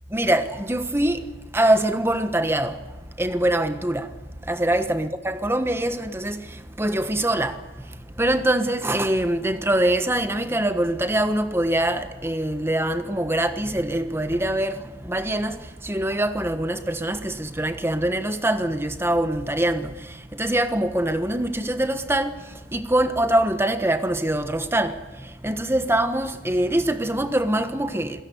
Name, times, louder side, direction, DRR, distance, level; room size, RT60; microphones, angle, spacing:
voice 1, 0.1-1.3 1.5-2.8 3.2-4.1 4.5-6.5 6.8-7.6 8.2-15.6 15.8-19.9 20.3-22.4 22.7-25.0 25.4-28.2, right 1 dB, 15° right, 1.3 m, -23 dB
27.0 x 17.0 x 9.5 m
head